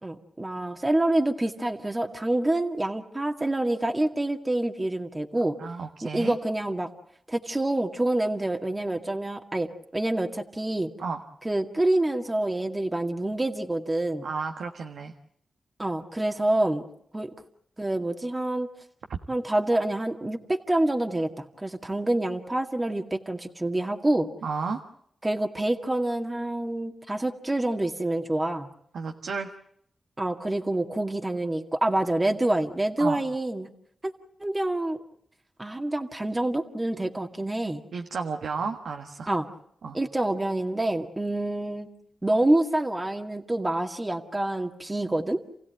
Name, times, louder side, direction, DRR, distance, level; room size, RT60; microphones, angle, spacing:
voice 1, 0.0-5.6 6.0-6.9 7.3-10.9 11.4-14.3 15.8-16.8 17.1-17.3 17.8-18.7 19.3-24.3 25.2-28.7 30.2-33.7 34.0-34.1 34.4-35.0 35.6-37.8 39.3-39.5 39.9-41.9 42.2-45.4, right 1 dB, 25° right, 3 dB, 2.1 m, -27 dB
voice 2, 5.6-6.3 11.0-11.2 14.2-15.1 24.4-24.8 28.9-29.5 33.0-33.2 37.9-39.3 39.8-40.0, right 5 dB, 85° right, 4 dB, 1.4 m, -32 dB
28.5 x 16.0 x 9.1 m, 0.71 s
cardioid pair, 50°, 0 cm